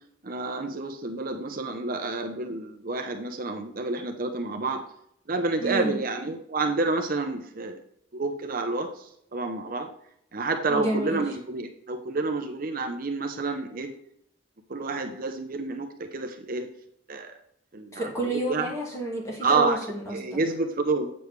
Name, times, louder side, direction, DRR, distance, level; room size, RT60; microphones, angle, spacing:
voice 1, 0.2-4.8 5.3-7.8 8.1-9.9 10.3-13.9 14.7-16.7 17.1-17.3 17.7-18.7 19.4-19.8 20.1-21.1, right 3 dB, 45° right, 5 dB, 0.7 m, -29 dB
voice 2, 5.6-6.0 10.7-11.2 17.9-20.4, right 2 dB, 15° left, -3 dB, 2.5 m, -29 dB
8.1 x 7.0 x 3.2 m, 0.74 s
head